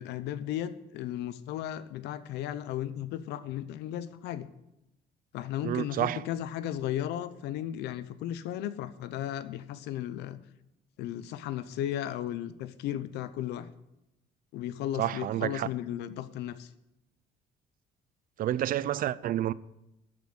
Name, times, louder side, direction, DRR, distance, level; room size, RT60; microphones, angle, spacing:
voice 1, 0.0-4.5 5.3-10.4 11.0-13.7 14.5-16.7, left 11 dB, 85° left, 0.8 m, -35 dB
voice 2, 5.6-6.2 15.0-15.7 18.4-19.5, right 12 dB, 55° right, 0.5 m, -29 dB
13.0 x 5.3 x 7.9 m
cardioid pair, 110°, 17 cm